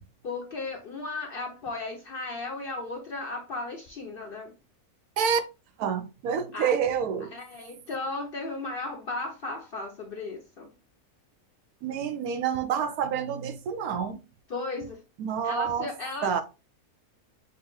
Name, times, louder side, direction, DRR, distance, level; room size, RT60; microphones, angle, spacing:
voice 1, 0.2-4.5 6.5-6.7 7.3-10.7 14.5-15.0 15.4-16.4, left 3 dB, 55° left, 0.6 m, -35 dB
voice 2, 5.8-7.4 11.8-14.2 15.2-15.9 16.2-16.4, right 7 dB, 80° right, 1.1 m, -28 dB
6.2 x 2.4 x 3.0 m
omnidirectional pair, 1.5 m